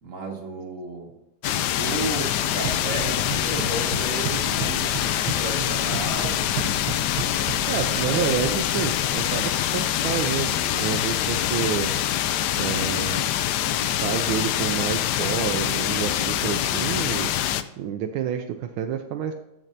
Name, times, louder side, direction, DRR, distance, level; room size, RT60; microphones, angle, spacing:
voice 1, 0.0-1.2 1.8-6.9 7.3-7.7 8.1-8.3, right 3 dB, 40° right, -1 dB, 2.0 m, -34 dB
FM Static, 1.4-17.6, left 11 dB, 80° left, 0.9 m, -25 dB
sound 1, 2.4-9.4, right 5 dB, 60° right, 1.5 m, -34 dB
voice 2, 7.3-11.9 12.6-13.3 14.0-19.3, right 9 dB, 80° right, 6 dB, 1.5 m, -29 dB
13.0 x 5.5 x 2.7 m, 0.89 s
omnidirectional pair, 2.3 m